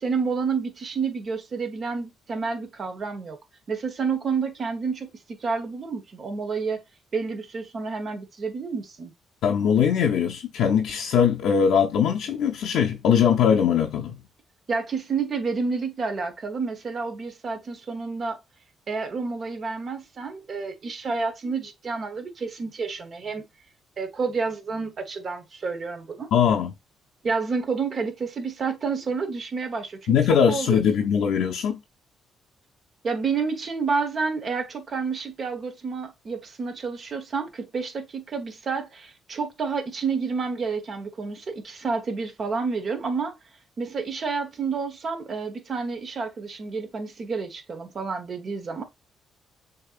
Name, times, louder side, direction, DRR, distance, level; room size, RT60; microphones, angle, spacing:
voice 1, 0.0-3.4 3.7-6.8 7.1-9.1 14.7-18.4 18.9-23.4 24.0-26.3 27.2-31.1 33.0-43.3 43.8-48.8, right 4 dB, 45° right, 1.1 m, -29 dB
voice 2, 9.4-14.2 26.3-26.7 30.1-31.8, left 7 dB, 80° left, 0.6 m, -21 dB
6.7 x 2.8 x 2.4 m
cardioid pair, 90°, 0 cm